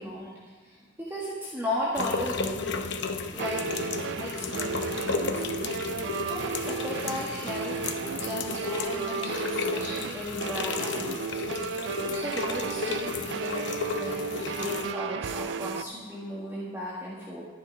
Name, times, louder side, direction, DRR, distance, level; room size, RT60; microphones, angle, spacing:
voice 1, 0.0-2.9 3.3-3.6 4.1-5.5 6.3-7.8 8.2-11.4 12.1-17.4, left 1 dB, 15° right, -6 dB, 1.6 m, -36 dB
sound 1, 1.9-14.9, left 4 dB, 65° left, 0.8 m, -33 dB
sound 2, 2.0-2.1 3.4-15.8, right 6 dB, 60° right, 0.3 m, -34 dB
12.0 x 10.5 x 4.7 m, 1.5 s
head